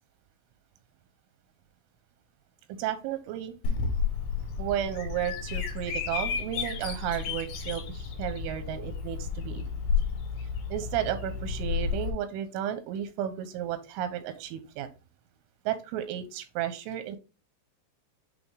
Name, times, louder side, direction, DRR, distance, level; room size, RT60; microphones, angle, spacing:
voice 1, 2.7-3.5 4.6-9.6 10.7-14.9 15.7-17.2, right 11 dB, 90° right, 10 dB, 3.3 m, -33 dB
Bird vocalization bird call bird song, 3.6-12.1, left 6 dB, 65° left, 3.2 m, -32 dB
8.2 x 3.2 x 3.7 m, 0.30 s
omnidirectional pair, 5.6 m